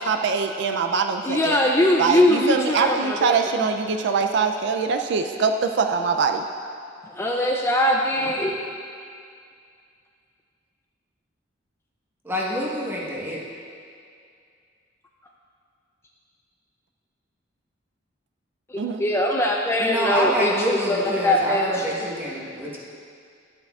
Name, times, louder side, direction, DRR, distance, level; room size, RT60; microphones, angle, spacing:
voice 1, 0.0-1.6 2.0-6.4 18.8-19.0, right 5 dB, 65° right, 6 dB, 0.4 m, -23 dB
voice 2, 1.2-3.7 7.2-8.5 18.7-21.8, left 1 dB, 15° left, 0 dB, 0.3 m, -22 dB
voice 3, 8.2-8.5 12.2-13.4 19.8-22.8, equal, 10° right, -5 dB, 1.1 m, -27 dB
11.5 x 7.6 x 2.4 m, 2.3 s
head